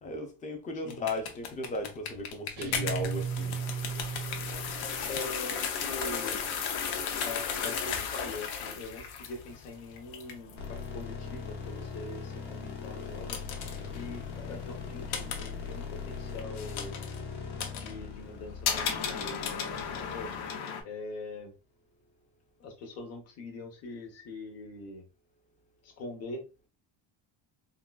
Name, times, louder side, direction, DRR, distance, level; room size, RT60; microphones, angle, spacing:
voice 1, 0.0-3.6, left 2 dB, 20° left, 0.4 m, -36 dB
sound 1, 0.9-20.8, left 7 dB, 85° left, 0.8 m, -36 dB
sound 2, 2.6-5.1, right 7 dB, 85° right, 0.6 m, -35 dB
voice 2, 5.1-6.4 7.2-13.4 13.9-17.0 17.7-20.3 20.8-21.5 22.6-25.0 25.8-26.5, left 2 dB, 35° left, 0.9 m, -43 dB
sound 3, 10.6-19.7, left 5 dB, 60° left, 1.1 m, -40 dB
3.7 x 2.3 x 2.2 m
cardioid pair, 165°, 44 cm